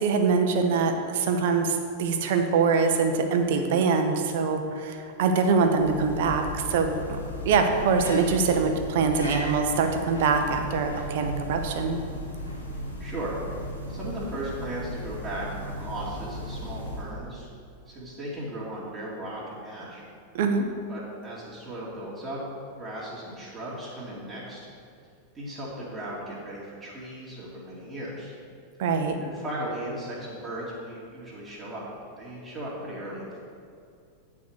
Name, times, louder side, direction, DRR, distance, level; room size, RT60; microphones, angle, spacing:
voice 1, 0.0-7.2 7.4-12.0 20.3-20.7 28.8-29.2, right 5 dB, 55° right, 5 dB, 0.9 m, -24 dB
sound 1, 5.6-17.3, equal, 85° left, 1.8 m, -36 dB
voice 2, 13.0-13.4 13.9-17.5 17.9-20.0 20.9-22.4 22.7-24.6 25.3-28.3 29.2-31.8 32.1-33.4, right 1 dB, 15° right, -9 dB, 2.3 m, -36 dB
9.3 x 4.8 x 6.4 m, 2.3 s
figure-of-eight pair, 90°, 0 cm